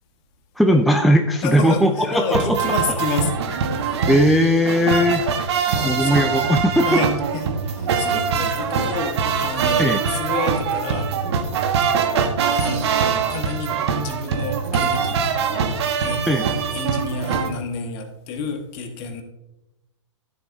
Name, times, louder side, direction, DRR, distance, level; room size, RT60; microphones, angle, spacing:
voice 1, 0.6-2.6 4.1-5.2 5.8-7.0 9.8-10.0 16.3-16.6, equal, ahead, 4 dB, 0.4 m, -18 dB
voice 2, 1.4-3.4 3.7-4.1 5.7-6.2 6.8-11.1 12.6-12.9 13.3-15.2 16.0-19.2, left 4 dB, 35° left, 4 dB, 1.6 m, -29 dB
sound 1, 2.3-17.5, right 6 dB, 55° right, 1.3 m, -23 dB
13.0 x 7.9 x 2.7 m, 0.95 s
hypercardioid pair, 120°, 16 cm